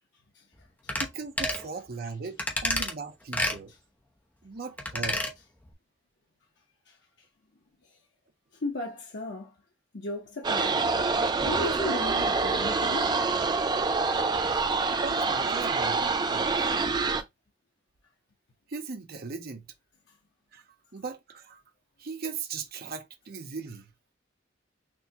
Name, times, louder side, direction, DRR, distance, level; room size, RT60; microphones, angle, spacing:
sound 1, 0.9-1.1 1.4-1.6 2.4-2.9 3.3-3.6 4.8-5.3 5.7-5.8, left 1 dB, 10° left, 0.7 m, -29 dB
voice 1, 1.0-3.7 4.4-5.2 15.0-17.0 18.7-19.6 20.5-20.6 20.9-21.6 22.0-23.9, right 4 dB, 55° right, 0.7 m, -38 dB
voice 2, 8.6-9.5 9.9-10.8 11.5-13.1 14.5-14.6, left 2 dB, 70° left, 0.9 m, -35 dB
sound 2, 10.4-17.2, right 4 dB, 25° right, 0.4 m, -26 dB
6.2 x 2.2 x 2.8 m
head